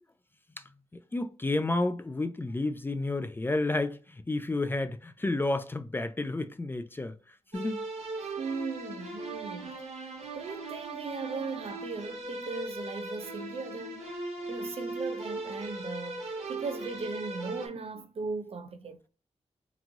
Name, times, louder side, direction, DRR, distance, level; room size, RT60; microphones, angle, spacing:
voice 1, 1.1-4.0 4.3-7.1 7.5-7.8, left 2 dB, 20° left, 0.4 m, -30 dB
sound 1, 7.5-17.7, right 2 dB, 80° right, 1.3 m, -39 dB
voice 2, 8.4-9.7 10.3-14.0 14.5-19.1, right 4 dB, 60° right, 0.5 m, -38 dB
3.8 x 3.0 x 3.5 m
wide cardioid pair, 95°, 11 cm